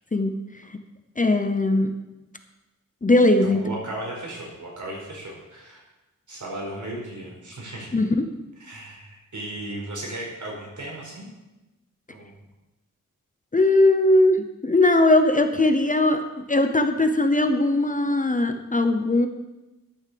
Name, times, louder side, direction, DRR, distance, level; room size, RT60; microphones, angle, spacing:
voice 1, 1.2-1.9 3.0-3.6 7.9-8.1 13.5-16.2 16.5-19.3, left 2 dB, 25° left, 7 dB, 0.8 m, -19 dB
voice 2, 3.4-5.8 6.3-7.9 8.6-11.3 12.1-12.3, right 1 dB, 65° right, -2 dB, 4.6 m, -36 dB
12.0 x 7.2 x 6.8 m, 1.1 s
wide cardioid pair, 120°, 32 cm